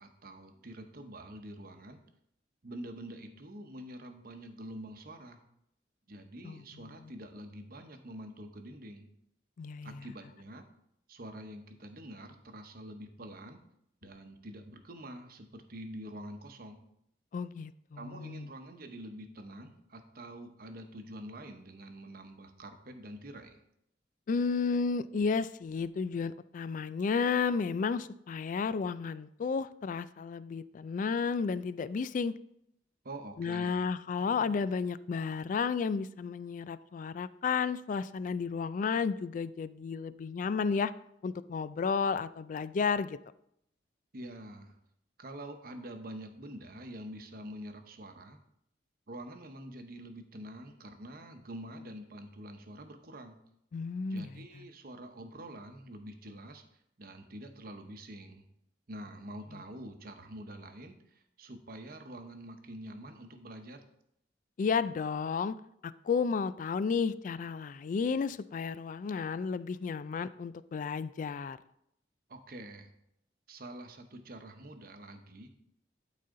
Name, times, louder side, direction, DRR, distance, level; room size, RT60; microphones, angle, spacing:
voice 1, 0.0-2.0 2.6-5.4 6.1-9.1 9.8-10.7 11.1-13.6 14.0-16.8 18.0-23.6 33.0-33.9 44.1-44.8 45.2-48.4 49.1-53.4 54.1-56.6 57.0-58.4 58.9-63.8 72.3-72.9 73.5-75.5, right 1 dB, 55° right, 6 dB, 0.9 m, -46 dB
voice 2, 9.6-10.0 17.3-18.5 24.3-32.3 33.4-40.9 41.2-43.2 53.7-54.3 64.6-65.6 65.8-71.6, left 5 dB, 45° left, 16 dB, 0.3 m, -32 dB
12.5 x 4.2 x 3.7 m, 0.75 s
head